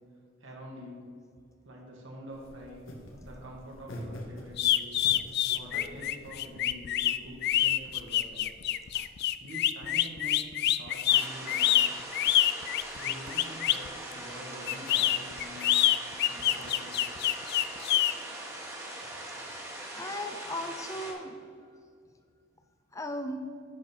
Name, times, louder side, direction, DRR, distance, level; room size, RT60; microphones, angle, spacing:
voice 1, 0.4-1.1 1.6-2.9 3.2-5.0 5.5-8.5 9.4-10.5 10.8-12.1 12.9-15.7 16.3-17.1, equal, 65° right, -1 dB, 2.1 m, -46 dB
sound 1, 2.3-9.0, equal, 80° left, 1.6 m, -47 dB
sound 2, 4.5-13.9 14.7-18.1, left 13 dB, 55° left, 0.3 m, -26 dB
sound 3, 11.1-21.1, right 1 dB, 15° right, 1.5 m, -41 dB
voice 2, 19.9-21.4 22.9-23.4, left 1 dB, 15° left, 6 dB, 0.7 m, -36 dB
11.0 x 5.5 x 4.5 m, 2.2 s
head